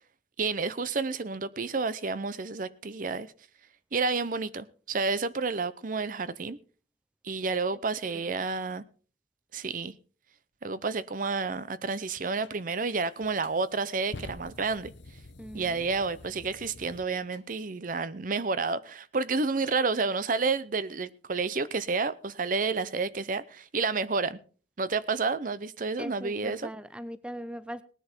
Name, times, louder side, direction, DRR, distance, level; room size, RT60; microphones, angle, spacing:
voice 1, 0.4-3.3 3.9-6.6 7.2-8.8 9.5-9.9 10.6-14.9 15.5-24.4 24.8-26.7, right 4 dB, 50° right, 0.7 m, -30 dB
sound 1, 12.4-12.6 13.2-17.4, left 2 dB, 80° left, 1.0 m, -47 dB
voice 2, 15.4-15.9 26.0-27.8, equal, 5° right, 0.6 m, -40 dB
19.0 x 10.0 x 4.5 m
head